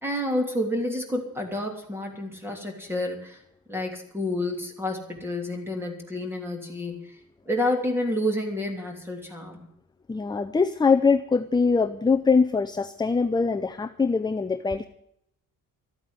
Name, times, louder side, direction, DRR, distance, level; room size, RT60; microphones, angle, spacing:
voice 1, 0.0-3.4 3.7-7.2 7.5-9.7, left 1 dB, 5° right, 3 dB, 3.0 m, -29 dB
voice 2, 10.1-14.9, left 4 dB, 15° left, 8 dB, 0.5 m, -23 dB
13.5 x 8.8 x 9.6 m, 0.74 s
cardioid pair, 160°, 33 cm